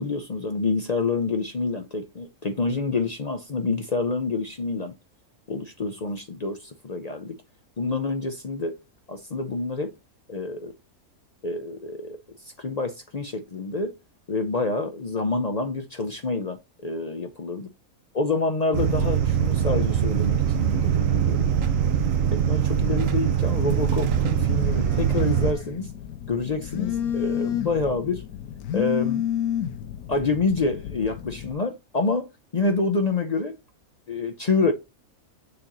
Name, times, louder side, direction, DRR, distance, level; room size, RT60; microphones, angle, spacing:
voice 1, 0.0-4.9 5.5-7.4 7.8-8.8 9.1-9.9 10.3-10.7 11.4-12.2 12.4-13.9 14.3-17.7 18.1-21.5 22.3-25.9 26.3-28.2 28.7-29.2 30.1-32.3 32.5-33.5 34.1-34.7, left 3 dB, 50° left, 0.4 m, -27 dB
sound 1, 18.7-25.5, right 9 dB, 65° right, 1.1 m, -22 dB
Telephone, 23.5-31.5, left 10 dB, 85° left, 1.2 m, -31 dB
6.8 x 2.9 x 5.1 m
omnidirectional pair, 1.5 m